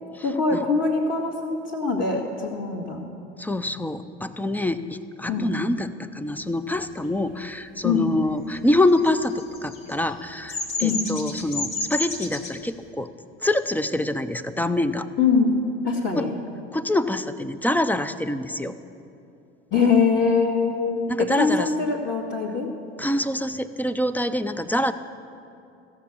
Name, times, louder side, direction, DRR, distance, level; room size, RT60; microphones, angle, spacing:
voice 1, 0.2-3.0 5.3-5.5 7.8-8.1 10.8-11.0 15.2-15.5 15.8-16.3 19.7-22.7, left 5 dB, 35° left, -5 dB, 2.0 m, -23 dB
voice 2, 3.4-13.1 13.4-15.1 16.2-16.3 16.7-18.7 21.1-21.7 23.0-24.9, left 1 dB, 5° left, 12 dB, 0.4 m, -25 dB
Bird vocalization bird call bird song, 8.8-12.5, left 2 dB, 70° left, 2.0 m, -30 dB
15.0 x 7.2 x 8.3 m, 2.6 s
hypercardioid pair, 75°, 32 cm